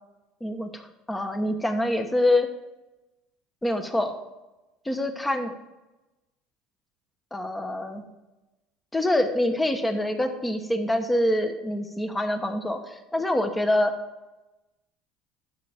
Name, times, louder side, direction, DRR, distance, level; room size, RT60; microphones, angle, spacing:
voice 1, 0.4-2.5 3.6-4.1 4.8-5.5 7.3-8.0 8.9-13.9, left 1 dB, 10° left, 6 dB, 1.1 m, -25 dB
12.0 x 7.8 x 3.5 m, 1.0 s
cardioid pair, 140°, 0 cm